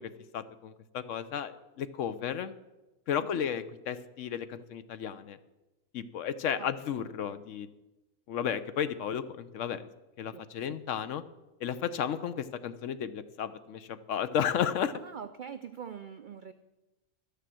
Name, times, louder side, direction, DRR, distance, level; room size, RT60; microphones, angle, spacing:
voice 1, 0.0-2.6 3.1-5.4 5.9-7.7 8.3-9.9 10.2-11.2 11.6-14.9, left 8 dB, 65° left, 13 dB, 0.9 m, -33 dB
voice 2, 14.9-16.5, right 7 dB, 75° right, 10 dB, 0.4 m, -43 dB
12.5 x 6.7 x 7.6 m, 1.0 s
omnidirectional pair, 1.5 m